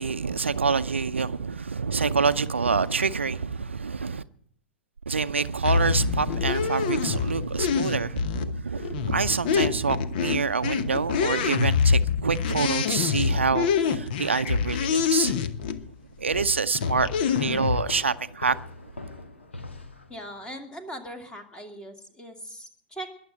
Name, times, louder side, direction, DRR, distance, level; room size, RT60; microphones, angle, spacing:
voice 1, 0.0-4.2 5.1-15.5 16.2-18.6, right 5 dB, 75° right, 0.6 m, -26 dB
sound 1, 5.6-15.8 16.3-17.8, left 6 dB, 50° left, 1.0 m, -26 dB
sound 2, 16.8-20.5, left 2 dB, 75° left, 1.8 m, -41 dB
voice 2, 20.1-23.1, right 1 dB, 10° left, 2.2 m, -40 dB
21.0 x 7.4 x 8.9 m
figure-of-eight pair, 100°, 6 cm